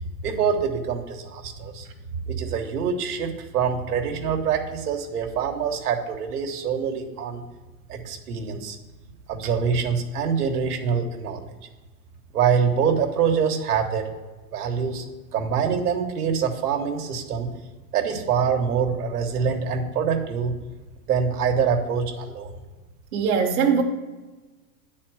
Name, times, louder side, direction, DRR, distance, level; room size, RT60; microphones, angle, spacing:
voice 1, 0.2-1.9 2.3-7.4 7.9-8.8 9.3-11.4 12.3-14.1 14.5-15.0 15.3-17.5 17.9-20.5 21.1-22.5, right 6 dB, 80° right, 3 dB, 1.4 m, -25 dB
voice 2, 23.1-23.8, right 6 dB, 60° right, 0 dB, 1.2 m, -21 dB
9.0 x 4.2 x 6.1 m, 1.2 s
supercardioid pair, 165°, 45 cm